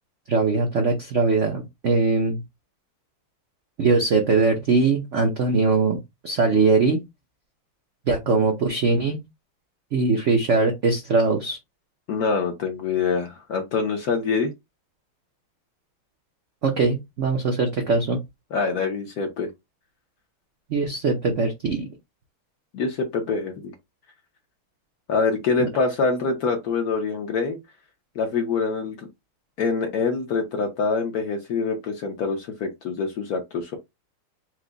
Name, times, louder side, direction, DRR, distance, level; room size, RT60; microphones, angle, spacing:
voice 1, 0.3-2.4 3.8-6.0 6.2-7.0 8.1-9.2 9.9-11.6 16.6-18.2 20.7-21.9 25.6-25.7, right 3 dB, 70° right, 0.7 m, -21 dB
voice 2, 12.1-14.5 18.5-19.5 22.7-23.7 25.1-27.6 28.1-29.1 29.6-33.8, left 4 dB, 60° left, 1.0 m, -25 dB
4.7 x 2.1 x 3.9 m
omnidirectional pair, 2.3 m